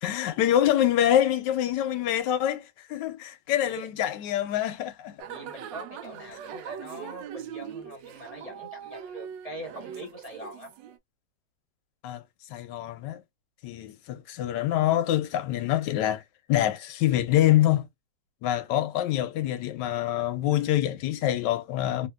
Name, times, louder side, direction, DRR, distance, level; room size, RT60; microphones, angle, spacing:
voice 1, 0.0-5.2 12.0-12.2 12.5-13.2 13.6-16.2 16.5-17.9 18.4-22.1, left 12 dB, 80° left, 1.2 m, -25 dB
sound 1, 5.2-11.0, right 8 dB, 80° right, 1.2 m, -41 dB
voice 2, 5.3-10.7, right 1 dB, 25° left, 1.1 m, -43 dB
3.0 x 2.8 x 2.2 m
omnidirectional pair, 2.0 m